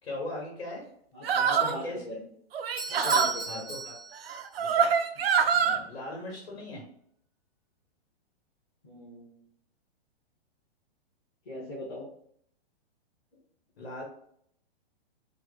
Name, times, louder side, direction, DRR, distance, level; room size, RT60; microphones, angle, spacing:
voice 1, 0.0-0.8 1.3-2.2 3.5-3.9 4.6-4.9 5.3-6.8 13.8-14.0, left 1 dB, 80° left, -3 dB, 1.5 m, -40 dB
voice 2, 1.1-2.2 2.9-3.6 5.6-5.8 8.8-9.4 11.5-12.1, left 1 dB, 25° left, -10 dB, 0.9 m, -40 dB
sound 1, 1.2-1.8 2.5-3.3 4.3-5.8, right 6 dB, 70° right, 0.5 m, -25 dB
Bell / Doorbell, 2.8-4.5, right 3 dB, 5° right, 0.5 m, -35 dB
3.1 x 2.1 x 3.6 m, 0.67 s
hypercardioid pair, 180°, 31 cm